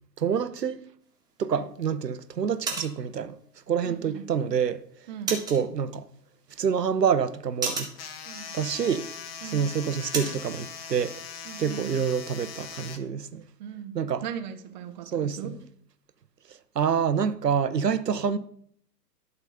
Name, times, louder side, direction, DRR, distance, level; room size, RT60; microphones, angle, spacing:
voice 1, 0.2-0.8 1.4-3.4 3.7-4.8 5.3-6.1 6.6-7.9 8.5-9.1 9.5-11.1 11.6-13.4 13.9-14.2 15.1-15.5 16.8-18.4, right 7 dB, 75° right, 0.8 m, -27 dB
sound 1, 1.0-10.5, right 3 dB, 10° right, 1.6 m, -39 dB
voice 2, 3.8-4.3 5.1-5.4 8.2-8.5 9.4-9.8 11.4-12.0 13.6-15.6, right 8 dB, 30° right, 0.7 m, -39 dB
sound 2, 8.0-13.0, left 7 dB, 40° left, 1.0 m, -40 dB
12.0 x 4.0 x 5.6 m
figure-of-eight pair, 115°, 48 cm